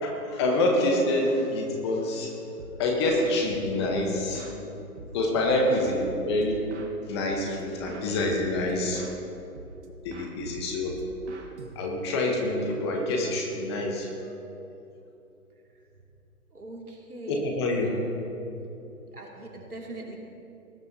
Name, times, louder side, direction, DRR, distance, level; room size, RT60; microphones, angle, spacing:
voice 1, 0.0-2.3 2.8-4.5 5.1-6.6 7.1-9.0 10.0-10.9 11.8-14.3 17.3-17.9, left 1 dB, 20° left, 0 dB, 1.0 m, -26 dB
sound 1, 2.6-2.9 3.2-4.6 5.0-7.0 7.3-7.6 7.9-9.2 9.6-9.9 10.1-12.2, right 2 dB, 45° right, 1.3 m, -43 dB
voice 2, 16.5-18.0 19.1-20.2, right 2 dB, 75° right, 0 dB, 2.5 m, -41 dB
19.0 x 11.5 x 2.8 m, 2.9 s
figure-of-eight pair, 140°, 45 cm